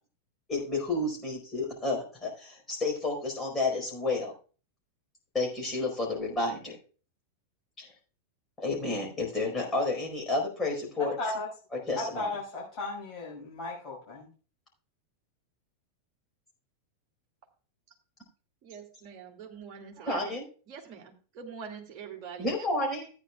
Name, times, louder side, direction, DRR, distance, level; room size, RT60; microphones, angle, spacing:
voice 1, 0.5-4.3 5.3-6.7 8.6-11.1 11.7-12.3 20.1-20.4 22.4-23.0, left 2 dB, 15° left, -1 dB, 4.6 m, -30 dB
voice 2, 11.0-11.5 12.0-14.3, left 2 dB, 30° left, -5 dB, 5.6 m, -35 dB
voice 3, 18.6-20.4 20.7-23.1, right 6 dB, 35° right, 0 dB, 2.2 m, -44 dB
14.0 x 9.4 x 2.3 m, 0.38 s
figure-of-eight pair, 90°, 0 cm